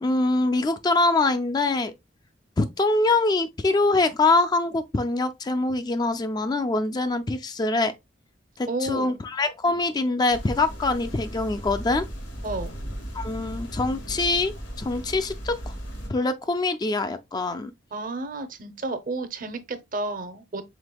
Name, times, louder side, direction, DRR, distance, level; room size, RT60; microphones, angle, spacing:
voice 1, 0.0-1.9 2.6-7.9 8.6-12.0 13.1-15.7 16.1-17.7, left 2 dB, 20° left, 0.3 m, -24 dB
voice 2, 8.7-9.2 12.4-12.7 17.9-20.6, right 2 dB, 45° right, 0.6 m, -31 dB
sound 1, 10.3-16.1, equal, 85° left, 1.8 m, -36 dB
5.1 x 3.6 x 2.2 m
head